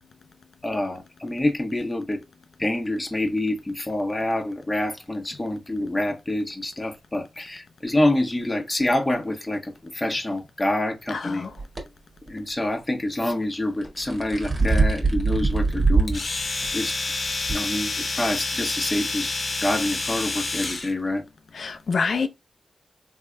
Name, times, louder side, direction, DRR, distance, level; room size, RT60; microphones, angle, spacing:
voice 1, 0.6-2.2 2.6-11.5 12.3-17.0 17.5-19.3 19.6-21.2, left 1 dB, 20° left, 1.2 m, -27 dB
voice 2, 11.1-11.5 21.5-22.3, left 5 dB, 75° left, 0.6 m, -26 dB
sound 1, 11.6-11.8 13.8-16.2 16.6-16.7 17.5-17.6, right 3 dB, 45° right, 1.9 m, -22 dB
Domestic sounds home sounds, 16.1-20.9, left 3 dB, 55° left, 1.0 m, -28 dB
3.6 x 3.3 x 2.2 m
cardioid pair, 50°, 0 cm